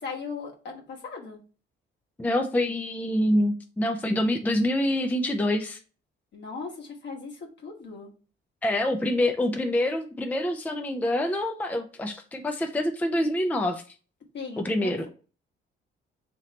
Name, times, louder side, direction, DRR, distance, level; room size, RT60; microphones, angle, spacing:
voice 1, 0.0-1.4 6.3-8.1 14.3-15.1, left 4 dB, 60° left, 0 dB, 1.2 m, -38 dB
voice 2, 2.2-5.8 8.6-13.8 14.6-15.1, left 1 dB, 10° left, 6 dB, 0.4 m, -26 dB
3.1 x 2.9 x 3.8 m, 0.36 s
cardioid pair, 90°, 20 cm